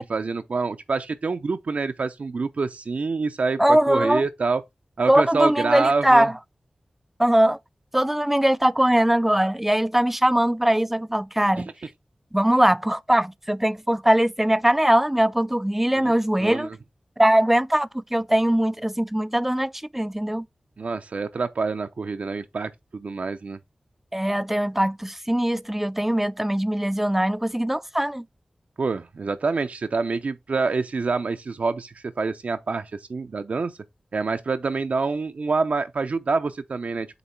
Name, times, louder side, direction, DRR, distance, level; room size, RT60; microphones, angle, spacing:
voice 1, 0.0-4.6 5.0-6.3 16.0-16.1 16.4-16.8 20.8-23.6 28.8-33.8 34.1-37.2, right 4 dB, 75° right, 0.5 m, -26 dB
voice 2, 3.6-4.2 5.1-6.3 7.2-7.6 7.9-11.7 12.3-16.7 17.2-20.5 24.1-28.2, right 1 dB, 10° right, 0.4 m, -21 dB
8.0 x 3.1 x 4.3 m
cardioid pair, 45°, 3 cm